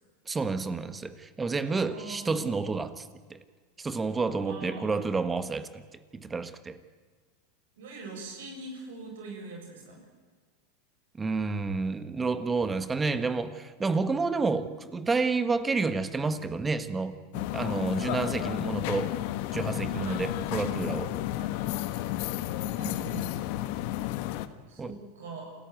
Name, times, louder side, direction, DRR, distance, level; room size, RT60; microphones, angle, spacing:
voice 1, 0.3-3.4 3.8-5.8 6.1-6.8 11.2-19.1 19.5-21.1 24.8-25.0, right 4 dB, 20° right, 12 dB, 1.6 m, -30 dB
voice 2, 1.7-2.5 2.8-2.9 4.4-5.1 7.8-10.0 17.5-18.1 20.0-20.2 21.4-21.5 22.7-23.3 24.7-25.5, right 3 dB, 75° right, 1 dB, 7.3 m, -42 dB
sound 1, 17.3-24.5, left 14 dB, 60° left, 1.4 m, -32 dB
28.0 x 15.0 x 9.3 m, 1.5 s
hypercardioid pair, 95°, 0 cm